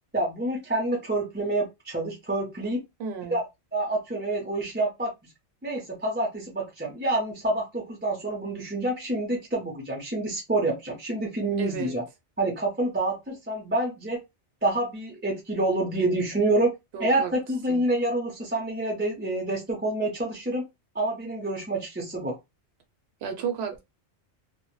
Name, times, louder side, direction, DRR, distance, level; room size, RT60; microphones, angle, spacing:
voice 1, 0.1-2.8 3.3-3.4 3.7-5.1 5.6-12.0 12.4-14.2 14.6-16.7 17.0-20.6 20.9-22.4, right 2 dB, 15° right, 0.4 m, -27 dB
voice 2, 3.0-3.4 11.6-11.9 16.9-17.3 17.7-17.8 23.2-23.8, right 7 dB, 70° right, 0.8 m, -33 dB
2.1 x 2.0 x 3.0 m
omnidirectional pair, 1.2 m